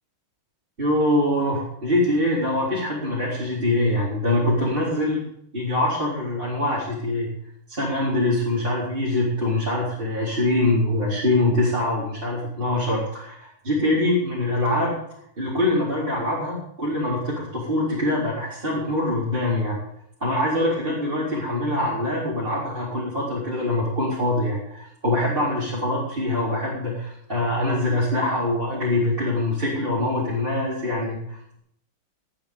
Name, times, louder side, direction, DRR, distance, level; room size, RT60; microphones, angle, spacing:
voice 1, 0.8-5.2 5.5-7.3 7.7-14.9 15.4-19.8 20.2-31.6, left 1 dB, 25° right, -8 dB, 4.5 m, -24 dB
19.0 x 11.0 x 5.2 m, 0.71 s
omnidirectional pair, 2.3 m